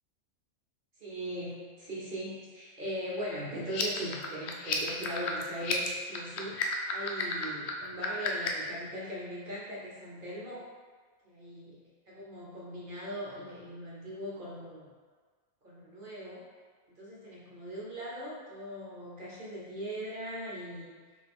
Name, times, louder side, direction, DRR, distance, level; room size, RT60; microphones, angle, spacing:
voice 1, 1.0-10.7 11.2-11.7 12.1-14.9 15.6-16.5 16.9-21.0, equal, 45° right, -5 dB, 0.9 m, -40 dB
sound 1, 3.6-8.7, left 5 dB, 65° left, 0.7 m, -33 dB
4.7 x 2.6 x 3.5 m, 1.5 s
omnidirectional pair, 1.4 m